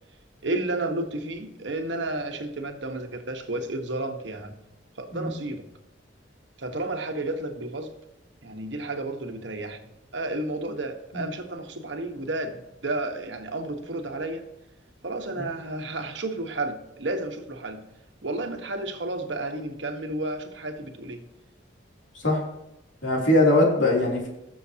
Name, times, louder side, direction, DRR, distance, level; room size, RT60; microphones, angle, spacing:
voice 1, 0.4-4.5 5.0-5.6 6.6-7.9 8.4-9.8 10.1-14.4 15.0-17.8 18.2-21.2, right 2 dB, 70° right, 5 dB, 1.4 m, -32 dB
voice 2, 23.0-24.3, left 1 dB, 90° left, -1 dB, 3.2 m, -21 dB
20.0 x 6.9 x 2.9 m, 0.90 s
head